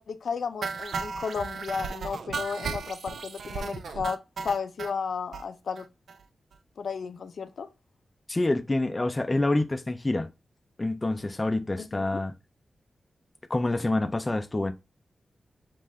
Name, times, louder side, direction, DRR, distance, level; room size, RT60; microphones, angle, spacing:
voice 1, 0.0-4.2 4.4-5.9 6.8-7.7 11.8-12.2, left 5 dB, 70° left, 0.6 m, -33 dB
sound 1, 0.6-4.9 5.3-5.4 5.8-5.9 6.1-6.2 6.5-6.6, right 5 dB, 80° right, 0.4 m, -35 dB
voice 2, 8.3-10.3 10.8-12.3 13.5-14.7, left 2 dB, 20° left, 0.4 m, -27 dB
5.5 x 2.5 x 3.1 m
wide cardioid pair, 170°, 0 cm